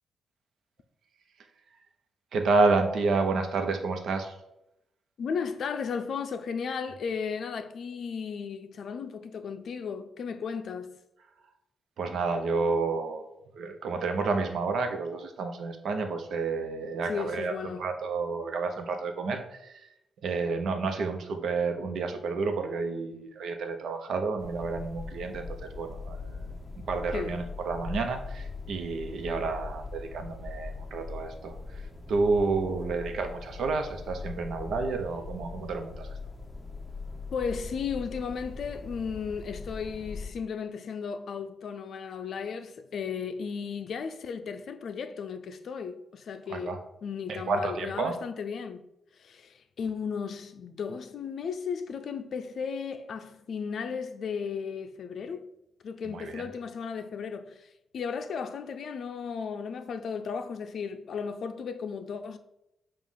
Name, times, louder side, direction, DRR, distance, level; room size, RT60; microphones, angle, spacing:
voice 1, 2.3-4.3 12.0-13.2 13.5-19.8 20.2-31.6 32.1-36.1 46.5-46.8 47.3-48.1 56.1-56.4, right 4 dB, 75° right, 0.9 m, -30 dB
voice 2, 5.2-11.0 17.1-17.9 27.1-27.4 37.3-48.8 49.2-55.5 55.8-62.4, left 6 dB, 65° left, 0.5 m, -35 dB
sound 1, 24.4-40.3, left 4 dB, 15° left, 0.8 m, -41 dB
7.2 x 2.5 x 5.6 m
cardioid pair, 125°, 0 cm